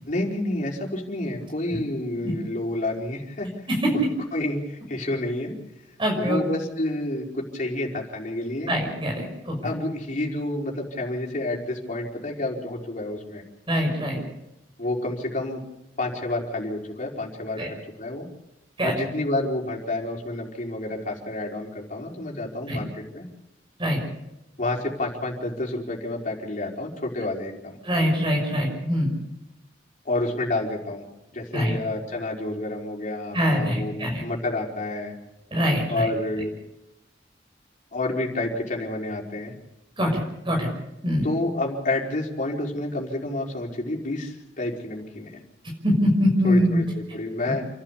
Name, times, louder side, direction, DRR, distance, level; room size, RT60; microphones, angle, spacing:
voice 1, 0.0-3.7 4.3-5.5 6.2-8.7 9.6-13.4 14.8-15.6 16.0-18.3 18.8-23.2 24.6-27.8 30.0-31.0 31.3-35.1 35.9-36.5 37.9-39.5 41.2-45.4 46.4-47.7, left 2 dB, 45° left, -1 dB, 4.8 m, -29 dB
voice 2, 6.0-6.4 8.7-9.6 13.7-14.2 17.6-17.7 18.8-18.9 22.7-22.8 23.8-24.0 27.8-29.1 31.5-31.7 33.3-34.2 35.5-36.1 40.0-40.7 41.0-41.3 45.8-46.8 47.5-47.6, equal, 30° right, 1 dB, 6.2 m, -23 dB
29.5 x 12.0 x 8.4 m, 0.89 s
head